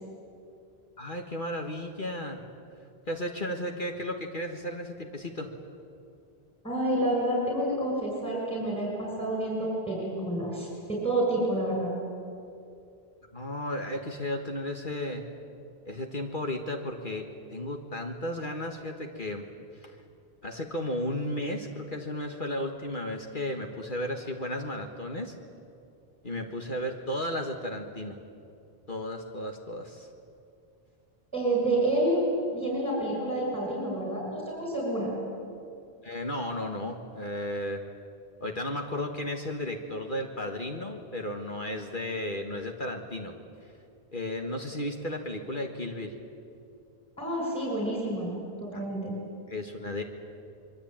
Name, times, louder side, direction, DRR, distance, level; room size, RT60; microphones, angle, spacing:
voice 1, 1.0-2.4 3.1-5.5 13.3-15.3 15.9-19.4 19.7-20.0 20.4-25.4 26.2-28.2 28.9-30.1 36.0-37.8 38.4-43.3 43.6-43.7 44.1-46.1 48.7-48.8 49.5-50.0, left 1 dB, 50° left, 3 dB, 1.9 m, -34 dB
voice 2, 6.6-11.9 31.3-32.2 32.5-35.1 47.2-48.3 48.6-49.2, right 1 dB, 5° left, -3 dB, 6.5 m, -29 dB
25.5 x 23.0 x 8.9 m, 2.5 s
omnidirectional pair, 1.1 m